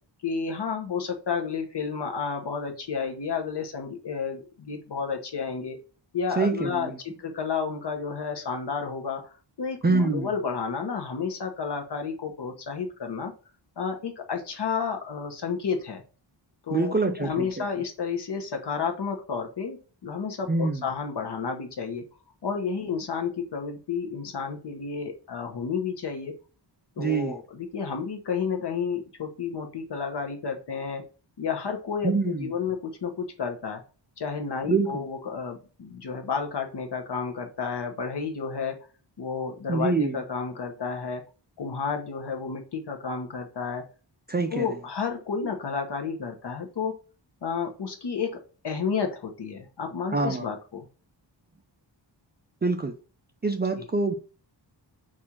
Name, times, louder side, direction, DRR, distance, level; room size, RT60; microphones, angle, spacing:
voice 1, 0.2-5.8 6.1-6.9 7.2-13.3 13.8-16.0 16.7-22.0 22.4-26.3 27.0-31.0 31.4-33.8 34.2-38.8 39.2-41.2 41.6-43.8 44.5-46.9 47.4-48.4 48.6-50.9, left 5 dB, 60° left, 4 dB, 1.0 m, -31 dB
voice 2, 6.4-7.0 9.8-10.3 16.7-17.6 20.5-20.8 27.0-27.4 32.0-32.5 34.7-35.0 39.7-40.2 44.3-44.7 50.1-50.5 52.6-53.0 53.4-54.2, right 3 dB, 25° right, 5 dB, 0.3 m, -25 dB
4.3 x 2.5 x 4.3 m, 0.36 s
wide cardioid pair, 135°, 45 cm